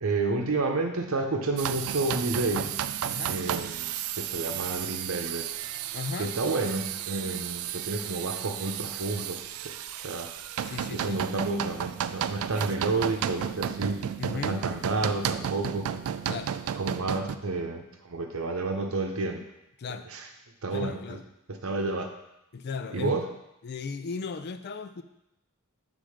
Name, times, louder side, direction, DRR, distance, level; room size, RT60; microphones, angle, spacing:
voice 1, 0.0-2.7 3.3-5.5 6.2-9.7 10.0-10.3 10.9-14.0 14.3-15.9 16.8-19.4 20.1-20.2 20.6-21.2 21.5-22.1 22.9-23.3, right 3 dB, 70° right, 4 dB, 0.9 m, -30 dB
sound 1, 1.6-17.4, right 9 dB, 85° right, 0.3 m, -33 dB
voice 2, 3.0-3.4 5.9-6.3 10.6-11.2 14.2-14.6 16.3-16.5 19.8-20.1 20.7-21.2 22.5-23.2 23.6-25.0, left 5 dB, 50° left, 10 dB, 0.4 m, -36 dB
7.5 x 3.8 x 5.0 m, 0.86 s
head